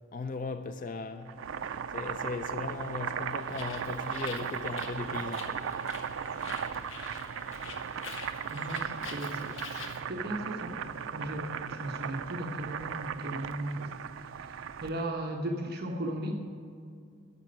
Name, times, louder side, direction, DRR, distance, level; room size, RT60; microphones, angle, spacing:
voice 1, 0.1-1.4 1.9-5.7, left 4 dB, 40° left, 0.4 m, -38 dB
Boiling, 1.2-15.0, right 7 dB, 70° right, 0.4 m, -37 dB
Bird, 3.4-10.0, left 3 dB, 70° left, 1.3 m, -45 dB
voice 2, 8.5-9.5 10.1-13.9 14.3-16.3, right 1 dB, 50° right, 1.1 m, -36 dB
10.5 x 6.8 x 9.2 m
head